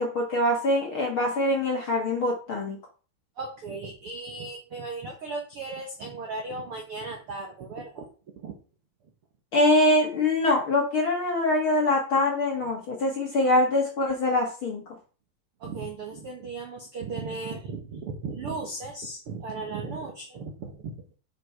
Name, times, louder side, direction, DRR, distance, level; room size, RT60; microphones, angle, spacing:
voice 1, 0.0-2.8 9.5-14.8, left 1 dB, 45° left, 0 dB, 1.9 m, -24 dB
voice 2, 3.4-8.1 8.4-8.5 15.6-20.9, right 3 dB, 70° right, 2 dB, 1.3 m, -36 dB
9.7 x 6.0 x 4.7 m, 0.36 s
omnidirectional pair, 4.7 m